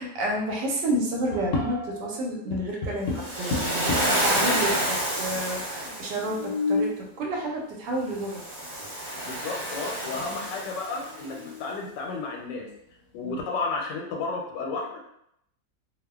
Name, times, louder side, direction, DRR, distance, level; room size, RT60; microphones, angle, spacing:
voice 1, 0.0-8.4 10.1-10.2 13.2-13.4, right 1 dB, 85° right, -1 dB, 1.3 m, -30 dB
sound 1, 1.3-2.2 2.5-4.3 5.0-5.1 5.3-5.4 6.1-7.0 8.8-8.9 9.4-9.9 10.3-10.4 10.9-11.8, left 3 dB, 65° left, 0.9 m, -31 dB
Waves surf, 3.2-6.4 8.2-11.2, right 1 dB, 55° right, 1.1 m, -29 dB
voice 2, 9.2-12.7 13.1-15.0, left 3 dB, 85° left, 0 dB, 1.2 m, -32 dB
2.9 x 2.1 x 2.2 m, 0.76 s
omnidirectional pair, 1.8 m